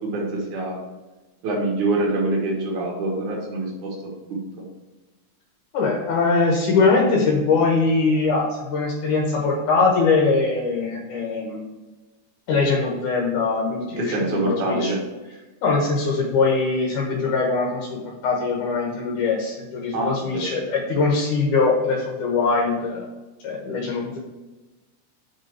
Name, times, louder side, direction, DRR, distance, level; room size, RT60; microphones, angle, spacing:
voice 1, 0.0-0.8 1.4-4.0 4.3-4.4 14.0-15.0 19.9-20.4, right 2 dB, 75° right, -1 dB, 3.1 m, -25 dB
voice 2, 5.7-11.7 12.5-14.9 15.6-18.0 18.2-23.1 23.4-24.2, left 4 dB, 85° left, -1 dB, 2.6 m, -22 dB
6.7 x 5.3 x 4.6 m, 1.2 s
omnidirectional pair, 3.5 m